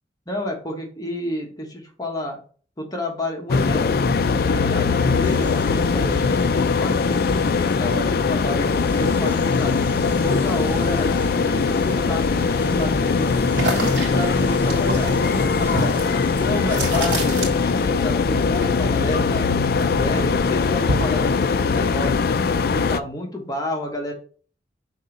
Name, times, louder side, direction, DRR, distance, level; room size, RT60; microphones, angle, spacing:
voice 1, 0.3-2.4 2.8-7.2 7.5-9.8 10.2-16.0 16.4-19.5 19.8-22.2 22.7-24.1, left 1 dB, 20° left, 1 dB, 1.3 m, -30 dB
sound 1, 3.5-23.0, left 4 dB, 55° left, 0.4 m, -21 dB
sound 2, 5.2-17.9, right 1 dB, 10° right, 0.6 m, -38 dB
sound 3, 13.5-18.0 18.3-19.9 20.3-21.3, right 1 dB, 85° right, 2.5 m, -28 dB
5.3 x 3.8 x 5.2 m, 0.42 s
head